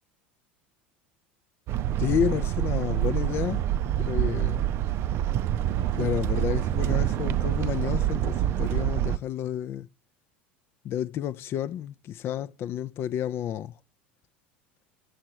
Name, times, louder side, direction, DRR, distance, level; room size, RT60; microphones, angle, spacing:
sound 1, 1.7-9.2, right 12 dB, 45° right, 0.4 m, -26 dB
voice 1, 2.0-3.6 4.0-4.7 6.0-9.9 10.8-13.8, left 10 dB, 45° left, 0.4 m, -30 dB
7.6 x 6.6 x 6.1 m
hypercardioid pair, 75°, 6 cm